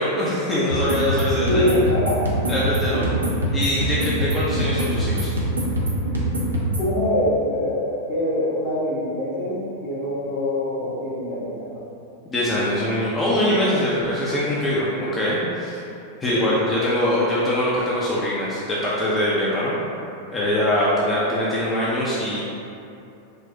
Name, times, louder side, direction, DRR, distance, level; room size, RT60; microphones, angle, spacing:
voice 1, 0.0-1.6 2.5-3.1 3.5-5.3 12.3-15.8 16.2-19.8 20.3-22.4, left 1 dB, 20° left, -7 dB, 0.5 m, -23 dB
sound 1, 0.7-6.9, right 1 dB, 80° right, 0.5 m, -24 dB
voice 2, 1.5-2.4 2.9-3.3 3.7-3.8 4.5-4.6 6.8-11.8 16.3-16.6 21.3-21.4, left 1 dB, 55° left, -8 dB, 1.0 m, -24 dB
4.0 x 2.0 x 2.6 m, 2.7 s
figure-of-eight pair, 90°, 0 cm